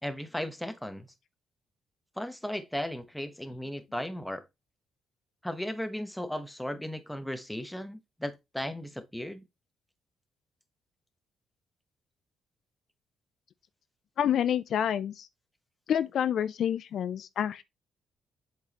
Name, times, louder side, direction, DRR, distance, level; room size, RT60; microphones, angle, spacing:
voice 1, 0.0-1.1 2.2-4.4 5.4-9.4, left 1 dB, 5° left, 1.1 m, -36 dB
voice 2, 14.2-15.3 15.9-17.6, left 9 dB, 65° left, 0.4 m, -28 dB
8.0 x 4.7 x 2.9 m
cardioid pair, 90°, 0 cm